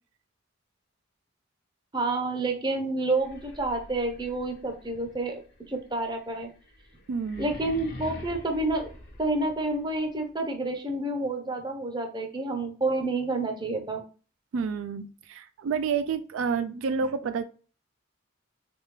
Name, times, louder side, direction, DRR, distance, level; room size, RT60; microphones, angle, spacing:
voice 1, 1.9-5.3 5.7-6.5 7.4-8.9 9.2-14.0, right 2 dB, 20° right, 4 dB, 0.6 m, -29 dB
sound 1, 3.1-10.0, left 1 dB, 45° left, 0.8 m, -46 dB
voice 2, 7.1-7.5 14.5-17.4, right 5 dB, 75° right, 9 dB, 0.3 m, -29 dB
3.4 x 3.2 x 3.1 m, 0.38 s
head